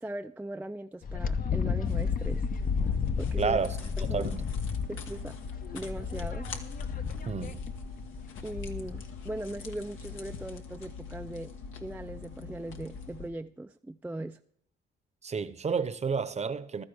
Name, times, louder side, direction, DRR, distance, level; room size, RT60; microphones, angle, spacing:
voice 1, 0.0-2.4 3.2-3.6 4.0-4.3 4.9-5.4 5.7-6.5 8.4-11.5 11.8-14.4, right 1 dB, 10° right, 0.4 m, -39 dB
Wind, 1.0-9.2, left 6 dB, 45° left, 0.8 m, -32 dB
sound 1, 1.8-13.3, left 5 dB, 80° left, 1.5 m, -43 dB
voice 2, 3.4-3.8 4.1-4.4 7.3-7.6 15.2-16.8, right 5 dB, 35° right, 0.9 m, -30 dB
15.0 x 12.5 x 3.5 m
cardioid pair, 90°, 20 cm